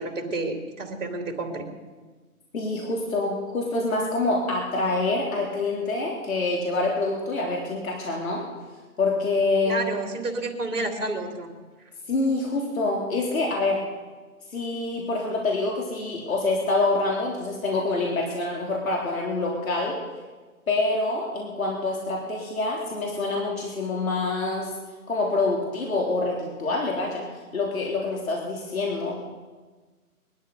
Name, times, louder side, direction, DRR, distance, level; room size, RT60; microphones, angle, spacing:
voice 1, 0.0-1.6 9.6-11.5, right 2 dB, 60° right, 3 dB, 3.2 m, -30 dB
voice 2, 2.5-8.5 9.0-9.9 12.1-13.8 14.5-20.0 20.7-24.7 25.1-29.2, left 2 dB, 65° left, -2 dB, 3.6 m, -26 dB
20.5 x 12.5 x 5.5 m, 1.3 s
hypercardioid pair, 155°, 44 cm